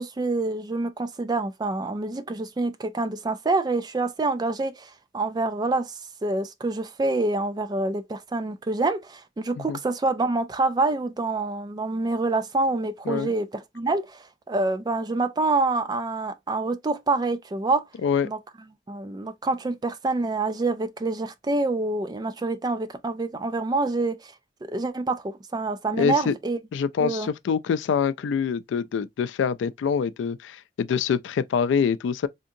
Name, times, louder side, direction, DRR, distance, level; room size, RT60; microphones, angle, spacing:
voice 1, 0.0-5.9 6.2-17.9 18.2-18.4 18.9-24.3 24.6-26.6 27.0-27.3, right 3 dB, 20° right, 0.3 m, -26 dB
voice 2, 26.0-26.3 26.7-32.3, left 6 dB, 80° left, 0.3 m, -25 dB
3.5 x 2.7 x 2.6 m
head